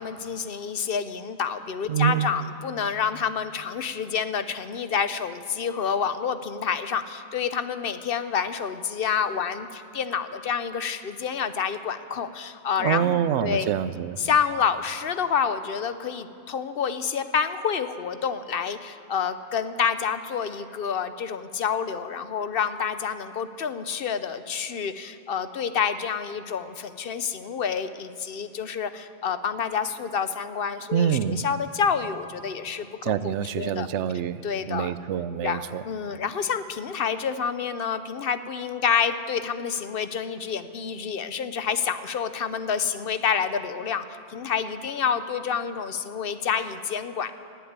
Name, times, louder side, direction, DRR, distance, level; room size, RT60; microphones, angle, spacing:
voice 1, 0.0-13.7 14.2-33.9 34.4-34.9 35.4-44.0 44.3-47.3, left 7 dB, 60° left, 11 dB, 0.8 m, -28 dB
voice 2, 1.9-2.3 12.8-14.2 30.9-31.4 33.0-35.8, right 9 dB, 90° right, 15 dB, 0.9 m, -26 dB
16.5 x 8.1 x 9.5 m, 2.7 s
omnidirectional pair, 1.1 m